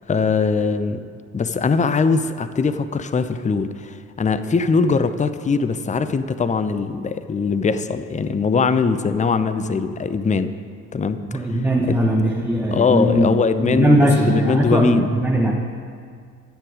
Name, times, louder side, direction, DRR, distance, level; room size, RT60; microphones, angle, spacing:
voice 1, 0.1-1.1 1.3-10.5 10.9-11.2 11.5-12.0 12.7-15.1, left 5 dB, 20° left, 12 dB, 0.6 m, -21 dB
voice 2, 11.3-15.5, right 1 dB, 5° right, -1 dB, 1.2 m, -19 dB
11.5 x 9.8 x 5.1 m, 2.1 s
figure-of-eight pair, 45°, 42 cm